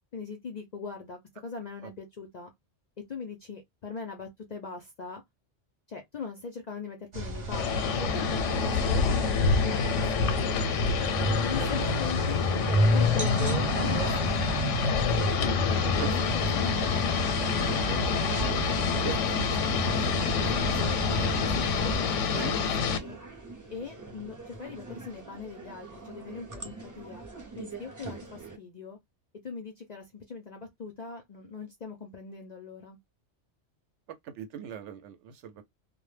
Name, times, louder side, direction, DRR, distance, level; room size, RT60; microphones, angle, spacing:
voice 1, 0.1-2.5 3.1-5.2 5.9-9.0 9.6-10.6 11.4-15.0 15.4-16.8 17.8-19.6 19.8-21.1 21.4-23.2 23.7-27.3 27.6-29.0 29.4-33.0, left 5 dB, 55° left, 0.4 m, -41 dB
sound 1, 7.1-22.0, equal, 40° right, 0.8 m, -31 dB
sound 2, 7.5-23.0, left 5 dB, 90° left, 0.9 m, -28 dB
sound 3, 12.0-28.6, right 3 dB, 25° right, 0.4 m, -44 dB
voice 2, 34.4-35.6, right 8 dB, 75° right, 0.9 m, -39 dB
2.1 x 2.0 x 3.1 m
omnidirectional pair, 1.2 m